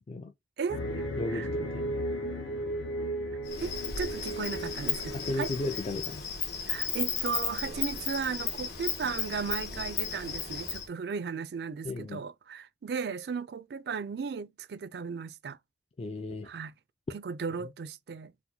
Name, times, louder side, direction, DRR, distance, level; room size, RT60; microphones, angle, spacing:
voice 1, 0.6-1.0 1.3-1.5 3.6-5.5 6.7-15.6 16.5-16.7 17.1-18.3, right 5 dB, 60° right, 0.4 m, -36 dB
sound 1, 0.7-5.9, equal, 80° left, 0.7 m, -35 dB
voice 2, 1.2-2.0 5.1-6.3 11.8-12.2 16.0-16.5 17.6-17.7, left 2 dB, 35° left, 0.3 m, -35 dB
Insect, 3.4-10.8, left 6 dB, 60° left, 1.1 m, -35 dB
4.3 x 2.1 x 2.7 m
head